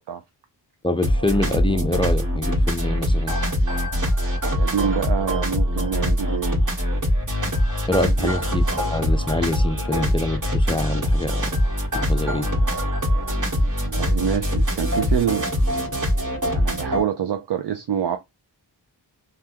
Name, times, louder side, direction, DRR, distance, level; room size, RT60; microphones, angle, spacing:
voice 1, 0.8-3.4 7.9-11.5 11.9-12.5, left 1 dB, 10° left, 0.4 m, -25 dB
sound 1, 1.0-17.0, equal, 40° right, 1.7 m, -22 dB
voice 2, 4.4-6.7 8.1-8.3 13.8-15.5 16.5-18.2, right 8 dB, 60° right, 0.5 m, -26 dB
3.4 x 2.4 x 2.8 m
wide cardioid pair, 100°, 46 cm